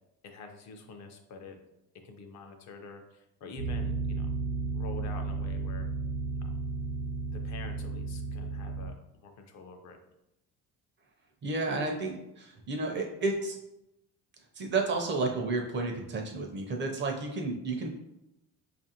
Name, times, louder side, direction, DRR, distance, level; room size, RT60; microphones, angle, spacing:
voice 1, 0.2-1.6 2.0-4.3 4.7-5.9 6.4-6.5 7.3-10.0, left 4 dB, 50° left, 5 dB, 0.5 m, -46 dB
sound 1, 3.6-8.9, right 3 dB, 85° right, 0.6 m, -33 dB
voice 2, 11.4-13.6 14.5-17.9, right 3 dB, 35° right, 2 dB, 0.4 m, -31 dB
4.8 x 2.5 x 2.7 m, 0.87 s
cardioid pair, 160°, 35 cm